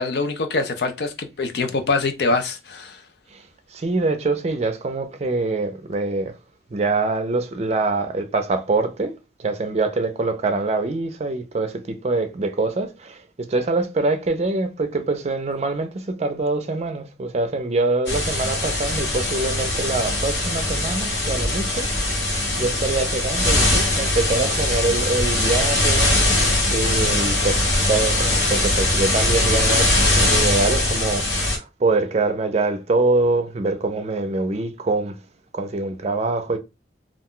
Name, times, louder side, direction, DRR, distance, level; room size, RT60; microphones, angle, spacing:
voice 1, 0.0-3.0, left 3 dB, 70° left, 0.5 m, -24 dB
voice 2, 3.7-6.3 6.7-21.9 22.2-26.4 26.7-35.2 35.5-36.6, right 3 dB, 40° right, 0.4 m, -24 dB
sound 1, 18.1-31.6, left 1 dB, 85° left, 1.3 m, -21 dB
2.4 x 2.2 x 3.7 m
head